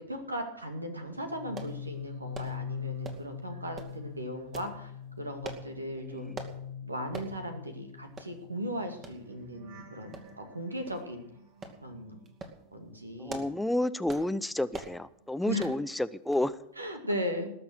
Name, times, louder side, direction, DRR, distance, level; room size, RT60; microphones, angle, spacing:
voice 1, 0.0-4.9 5.2-6.3 6.9-11.2 11.8-12.2 12.7-13.4 15.5-15.7 16.8-17.5, equal, 80° right, 6 dB, 2.3 m, -37 dB
sound 1, 1.2-13.4 13.7-15.8 16.1-16.5, left 6 dB, 55° right, 3.3 m, -44 dB
sound 2, 1.6-1.8 2.3-2.6 3.0-3.3 3.8-4.0 4.5-4.7 5.4-5.7 6.4-6.6 7.1-7.3 7.7-7.8 8.2-8.3 9.0-9.2 10.1-10.5 10.9-11.0 11.6-11.8 12.3-12.6 13.1-13.6 14.1-14.3 14.7-15.0 15.6-15.8 16.3-16.5 16.8-16.9, right 3 dB, 25° right, 2.3 m, -42 dB
voice 2, 13.2-16.6, left 1 dB, 5° left, 13 dB, 0.5 m, -30 dB
20.0 x 6.8 x 7.8 m, 0.75 s
figure-of-eight pair, 90°, 0 cm